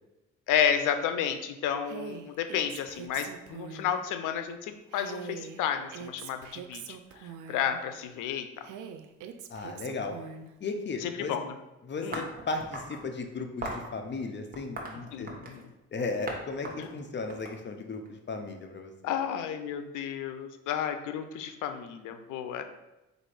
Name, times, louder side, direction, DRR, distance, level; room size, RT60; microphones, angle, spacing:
voice 1, 0.5-6.8 7.5-8.5 11.0-11.5 12.0-12.2 15.1-15.6 16.8-16.9 19.0-22.6, left 8 dB, 90° left, 8 dB, 0.5 m, -31 dB
Female speech woman speaking, 1.8-4.0 4.9-7.8 8.6-10.5, right 8 dB, 80° right, 0.5 m, -43 dB
voice 2, 9.5-10.2 10.6-11.3 11.8-15.3 15.9-19.1, left 3 dB, 35° left, 5 dB, 0.6 m, -35 dB
sound 1, 12.1-13.0 13.6-13.9 14.5-15.7 16.3-16.4 16.6-18.1, right 2 dB, 30° right, 1.0 m, -38 dB
4.1 x 2.5 x 4.7 m, 0.99 s
cardioid pair, 90°, 30 cm